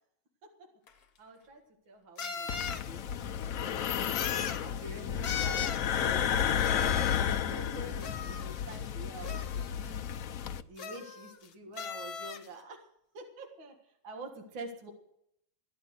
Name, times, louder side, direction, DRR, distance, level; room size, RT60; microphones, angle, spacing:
sound 1, 0.9-1.0 2.2-2.9 4.1-4.7 5.2-5.9 6.6-7.4 8.0-8.8 9.2-9.9 10.8-11.5 11.8-12.5, left 7 dB, 50° left, 1.4 m, -38 dB
voice 1, 1.2-1.6 1.9-4.3 4.6-6.8 7.1-10.1 10.6-12.8 13.1-13.7 14.0-14.9, right 1 dB, 65° right, 2 dB, 2.5 m, -47 dB
sound 2, 2.5-10.6, left 8 dB, 80° left, 0.7 m, -32 dB
15.5 x 10.5 x 6.5 m, 0.75 s
omnidirectional pair, 2.3 m